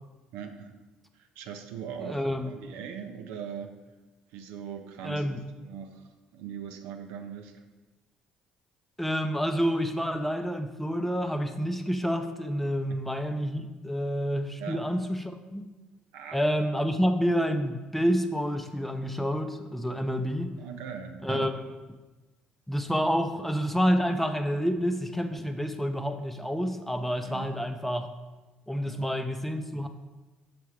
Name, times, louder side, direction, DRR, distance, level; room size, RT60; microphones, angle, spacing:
voice 1, 0.3-0.8 1.1-3.7 4.3-5.2 5.5-7.6 12.9-13.0 14.6-14.9 16.1-16.4 17.9-18.0 20.6-21.5 27.2-27.5 28.8-29.1, right 7 dB, 70° right, 5 dB, 0.5 m, -40 dB
voice 2, 2.0-2.5 5.0-5.4 9.0-15.2 15.5-15.6 16.3-20.6 21.2-21.5 22.7-28.1 28.7-29.9, equal, 5° left, 7 dB, 0.6 m, -28 dB
6.6 x 3.4 x 4.9 m, 1.2 s
hypercardioid pair, 55°, 4 cm